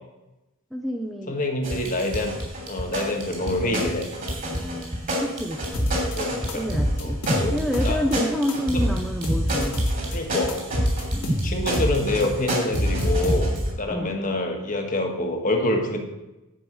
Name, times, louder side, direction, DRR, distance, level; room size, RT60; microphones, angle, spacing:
voice 1, 0.7-1.4 4.4-5.9 6.5-7.2 7.5-9.8 11.1-11.7 13.9-14.1, equal, ahead, 2 dB, 0.6 m, -29 dB
voice 2, 1.3-2.3 2.7-4.1 6.1-6.6 7.0-7.5 7.8-8.0 8.7-8.9 10.1-10.6 11.4-16.0, left 1 dB, 35° left, 3 dB, 1.5 m, -26 dB
sound 1, 1.6-13.7, equal, 40° right, 3.2 m, -30 dB
sound 2, 5.7-6.2 6.5-8.2 8.5-10.2 10.5-12.0 12.2-13.7, equal, 75° left, 2.4 m, -24 dB
10.5 x 5.3 x 8.0 m, 1.0 s
head